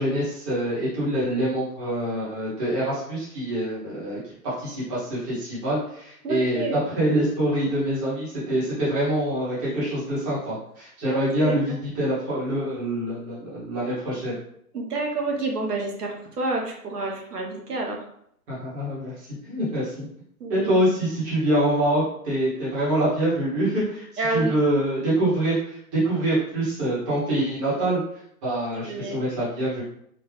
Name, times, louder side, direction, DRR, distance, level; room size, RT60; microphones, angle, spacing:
voice 1, 0.0-4.2 4.4-14.3 18.5-20.0 20.5-28.0 28.4-29.8, right 1 dB, 15° right, -9 dB, 1.2 m, -25 dB
voice 2, 6.2-6.8 11.0-11.8 14.7-18.0 20.4-20.7 24.2-24.6 28.8-29.2, right 2 dB, 80° right, 0 dB, 1.3 m, -29 dB
3.8 x 2.4 x 3.3 m, 0.71 s
hypercardioid pair, 155°, 46 cm